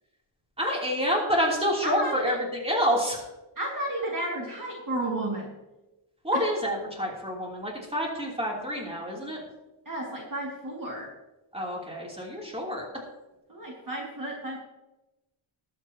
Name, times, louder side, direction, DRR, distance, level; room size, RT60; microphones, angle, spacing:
voice 1, 0.6-3.2 6.2-9.4 11.5-12.8, equal, 10° right, -3 dB, 3.1 m, -28 dB
voice 2, 1.8-2.4 3.6-5.5 6.3-6.4 9.9-11.1 13.5-14.6, right 1 dB, 40° right, -3 dB, 2.3 m, -32 dB
21.0 x 8.3 x 2.9 m, 1.0 s
wide cardioid pair, 155°, 50 cm